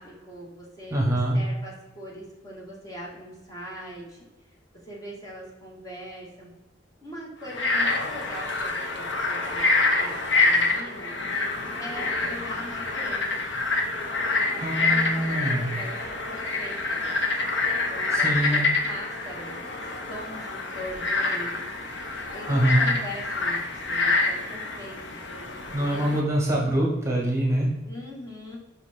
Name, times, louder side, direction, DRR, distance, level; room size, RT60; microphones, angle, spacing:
voice 1, 0.0-4.6 4.8-6.5 7.0-11.2 11.8-13.5 14.5-17.1 17.9-21.6 22.3-26.2 27.8-28.6, equal, 20° left, -5 dB, 1.5 m, -41 dB
voice 2, 0.9-1.4 14.6-15.7 18.1-18.7 22.5-22.9 25.7-27.7, right 1 dB, 15° right, -3 dB, 1.3 m, -24 dB
Frog, 7.4-26.2, left 3 dB, 70° left, 0.9 m, -27 dB
5.5 x 4.4 x 4.2 m, 1.1 s
head